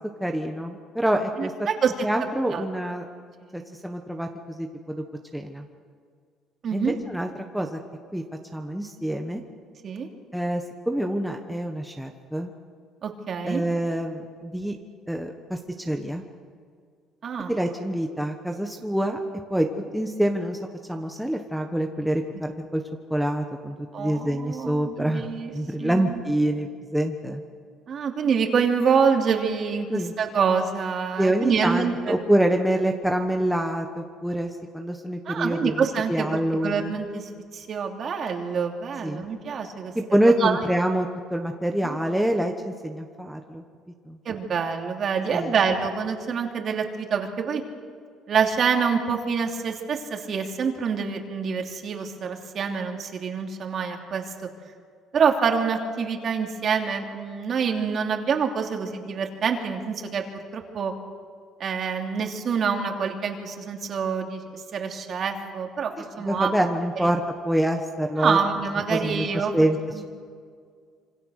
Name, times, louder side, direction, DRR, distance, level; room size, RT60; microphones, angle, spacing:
voice 1, 0.2-1.5 2.0-3.0 3.5-4.3 4.6-5.0 5.3-5.6 6.7-7.8 8.1-8.2 8.5-9.4 10.3-12.5 13.4-14.8 15.1-16.2 17.5-19.2 19.5-19.7 19.9-20.6 20.9-22.8 23.1-25.3 25.5-27.4 29.9-30.1 31.2-36.9 39.0-39.3 39.9-43.6 44.1-44.2 45.3-45.5 66.0-68.4 68.9-69.8, right 1 dB, ahead, 3 dB, 1.3 m, -26 dB
voice 2, 1.4-1.9 2.5-2.6 3.5-3.6 6.6-7.0 9.8-10.1 13.0-13.6 17.2-17.5 23.9-25.5 25.8-26.2 27.9-32.2 35.2-36.3 36.6-39.9 40.4-40.6 41.8-42.0 44.2-47.6 48.3-54.2 55.1-60.2 60.5-60.9 61.6-66.5 67.0-67.1 68.2-69.7 69.9-70.2, right 6 dB, 40° right, 3 dB, 3.0 m, -26 dB
27.0 x 25.5 x 6.6 m, 2.1 s
cardioid pair, 145°, 0 cm